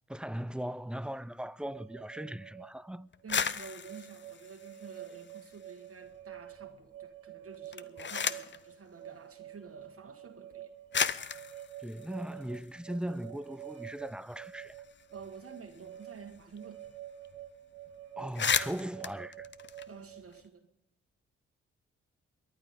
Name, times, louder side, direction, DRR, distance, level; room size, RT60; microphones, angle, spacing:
voice 1, 0.1-3.1 11.8-14.7 18.2-19.5, right 1 dB, 5° right, 0.4 m, -39 dB
sound 1, 1.6-20.4, right 12 dB, 90° right, 1.4 m, -49 dB
sound 2, 3.1-5.7 6.1-6.8 7.5-8.6 9.7-9.8 10.5-10.6 10.9-13.2 13.6-13.7 14.0-16.6 16.8-17.0 17.2-17.5 17.9-18.0 18.2-20.4, left 6 dB, 35° left, 0.7 m, -36 dB
voice 2, 3.2-10.7 15.1-16.8 19.9-20.7, right 5 dB, 45° right, 1.4 m, -50 dB
22.5 x 9.6 x 5.1 m
supercardioid pair, 45°, 31 cm